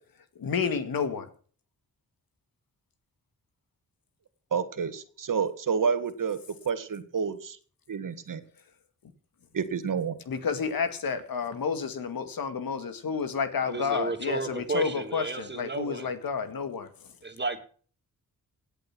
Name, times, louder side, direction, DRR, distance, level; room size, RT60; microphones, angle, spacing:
voice 1, 0.4-1.3 10.3-17.1, left 6 dB, 80° left, 2.1 m, -30 dB
voice 2, 4.5-6.4 6.6-7.6 7.9-8.4 9.5-10.2, right 6 dB, 65° right, 1.8 m, -29 dB
voice 3, 13.7-16.1 17.2-17.6, right 3 dB, 30° right, 2.7 m, -33 dB
17.0 x 8.3 x 6.0 m
cardioid pair, 75°, 35 cm